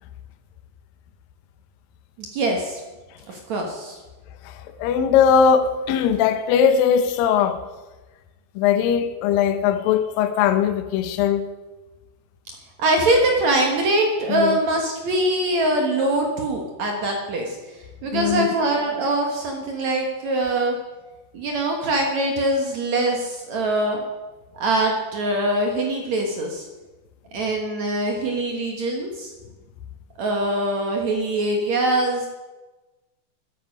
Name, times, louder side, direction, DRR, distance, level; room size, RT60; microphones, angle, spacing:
voice 1, 2.2-2.8 3.3-4.0 12.8-17.6 18.0-20.8 21.3-24.0 24.5-26.7 27.3-29.3 30.2-32.3, right 1 dB, 65° right, 1.8 m, -23 dB
voice 2, 4.8-7.6 8.6-11.5 14.3-14.6 18.1-18.5, left 7 dB, 85° left, 2.0 m, -19 dB
13.0 x 11.5 x 5.4 m
omnidirectional pair, 5.3 m